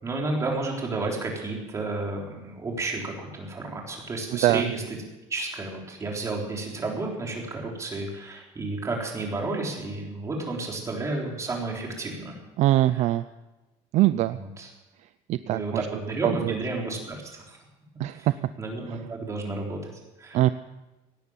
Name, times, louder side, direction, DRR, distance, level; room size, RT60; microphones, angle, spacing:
voice 1, 0.0-4.8 5.3-12.4 14.3-14.7 15.4-17.6 18.1-18.3 18.6-19.9 20.2-20.4, right 2 dB, 20° right, 0 dB, 3.8 m, -31 dB
voice 2, 12.6-13.2 13.9-14.4 15.3-15.9 16.2-16.5 18.0-18.3 20.3-20.5, right 15 dB, 55° right, 13 dB, 0.5 m, -22 dB
17.5 x 10.5 x 7.3 m, 1.0 s
cardioid pair, 145°, 14 cm